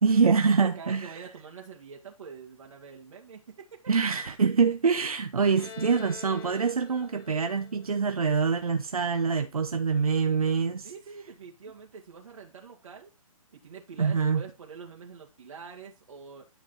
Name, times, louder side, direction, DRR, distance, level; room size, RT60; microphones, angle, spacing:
voice 1, 0.0-1.1 3.9-10.9 14.0-14.4, right 5 dB, 85° right, 0.9 m, -25 dB
voice 2, 0.6-4.0 10.8-13.1 13.5-16.5, right 6 dB, 65° right, 2.3 m, -45 dB
Bowed string instrument, 5.6-9.1, left 8 dB, 40° left, 3.6 m, -48 dB
12.0 x 4.6 x 4.1 m
hypercardioid pair, 140°, 18 cm